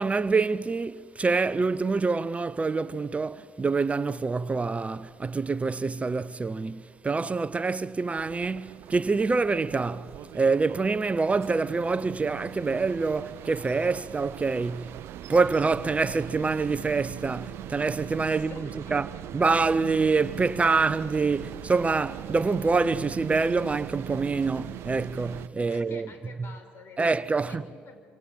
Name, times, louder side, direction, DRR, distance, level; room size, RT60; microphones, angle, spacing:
voice 1, 0.0-15.0 15.3-19.1 19.3-26.1 27.0-27.6, right 4 dB, 25° right, 0.8 m, -26 dB
sound 1, 8.2-25.5, right 12 dB, 60° right, 0.7 m, -41 dB
voice 2, 18.3-19.2 25.7-27.0 27.5-28.0, left 4 dB, 50° left, 5.2 m, -48 dB
26.5 x 26.0 x 7.9 m
hypercardioid pair, 55°, 5 cm